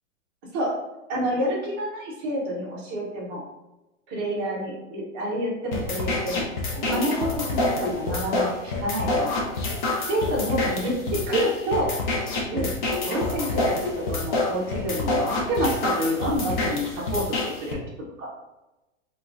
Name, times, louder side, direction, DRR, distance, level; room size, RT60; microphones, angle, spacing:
voice 1, 1.1-3.4 4.1-6.5 6.7-9.3 10.1-11.9 12.5-12.7 13.0-13.8 14.1-17.8 18.2-18.3, equal, 20° right, -4 dB, 0.4 m, -28 dB
sound 1, 5.7-17.7, left 2 dB, 40° left, 0.6 m, -27 dB
3.5 x 2.2 x 2.3 m, 1.0 s
hypercardioid pair, 150°, 38 cm